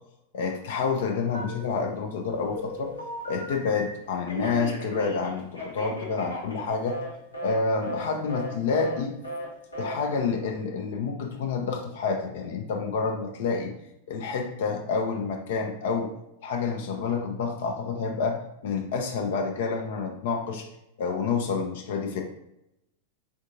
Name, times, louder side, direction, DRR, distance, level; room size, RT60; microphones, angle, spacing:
voice 1, 0.3-2.9 3.3-7.0 7.4-9.2 9.8-13.7 14.1-16.1 16.4-18.4 18.6-20.7 21.0-22.2, left 5 dB, 55° left, 3 dB, 0.5 m, -28 dB
Telephone, 1.3-1.9 2.3-3.9 4.3-7.1 7.3-7.6 7.8-8.0 8.3-8.5 8.8-9.0 9.2-9.5 9.7-9.9, equal, 85° left, 1.0 m, -36 dB
3.6 x 3.5 x 2.6 m, 0.84 s
figure-of-eight pair, 90°, 0 cm